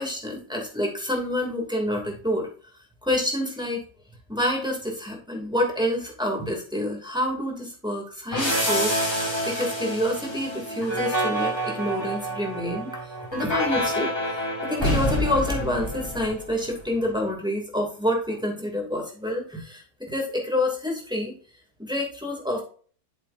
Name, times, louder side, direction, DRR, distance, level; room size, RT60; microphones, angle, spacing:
voice 1, 0.0-2.5 3.0-3.8 4.3-14.1 14.7-21.3 21.8-22.6, left 1 dB, 5° right, -1 dB, 2.6 m, -28 dB
sound 1, 8.3-16.8, equal, 15° left, 2.9 m, -27 dB
9.1 x 6.9 x 2.7 m, 0.43 s
omnidirectional pair, 1.7 m